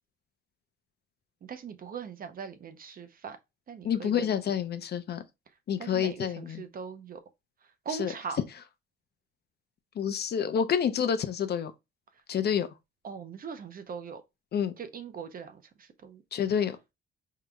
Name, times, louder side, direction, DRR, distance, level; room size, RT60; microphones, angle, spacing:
voice 1, 1.4-3.4 3.7-4.3 5.8-7.2 7.9-8.4 13.0-14.2 14.8-16.2, right 6 dB, 45° right, 0.7 m, -40 dB
voice 2, 3.8-5.2 5.7-6.6 7.9-8.1 10.0-11.7 12.3-12.7 14.5-14.7 16.3-16.8, left 8 dB, 50° left, 0.7 m, -28 dB
4.6 x 3.7 x 2.3 m
cardioid pair, 85°, 21 cm